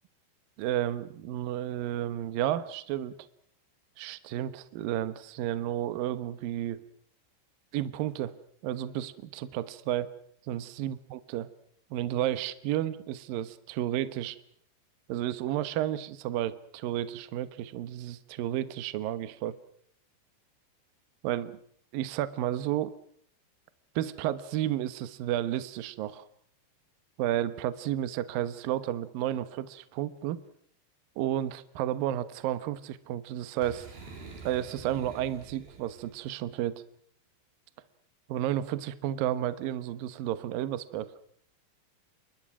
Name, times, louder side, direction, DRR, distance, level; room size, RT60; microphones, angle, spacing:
voice 1, 0.6-3.2 4.0-6.8 7.7-8.3 8.6-10.1 10.5-11.5 11.9-14.4 15.1-19.5 21.2-21.6 21.9-22.9 24.0-26.3 27.2-30.4 31.2-33.9 34.4-36.8 38.3-41.1, right 12 dB, 75° right, 13 dB, 2.1 m, -32 dB
Boom, 33.6-36.3, right 4 dB, 50° right, 6.6 m, -47 dB
28.5 x 23.0 x 6.1 m, 0.64 s
omnidirectional pair, 5.8 m